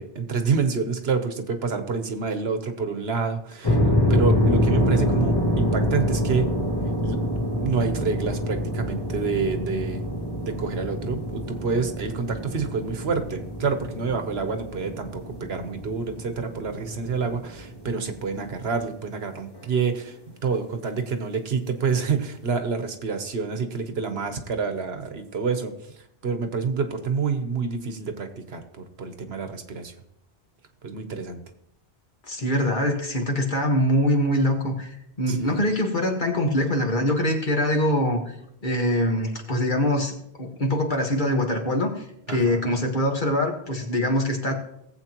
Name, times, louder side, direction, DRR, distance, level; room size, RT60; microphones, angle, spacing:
voice 1, 0.0-6.5 7.0-7.2 7.6-10.0 10.4-20.2 20.4-25.7 26.2-29.9 30.8-31.4 35.3-35.6 42.3-42.6, right 5 dB, 70° right, 8 dB, 1.3 m, -28 dB
sound 1, 3.6-18.9, equal, 25° left, 1.1 m, -26 dB
voice 2, 32.2-38.4 38.6-44.5, left 1 dB, 50° left, 1 dB, 1.7 m, -24 dB
18.0 x 7.8 x 3.0 m, 0.76 s
omnidirectional pair, 1.1 m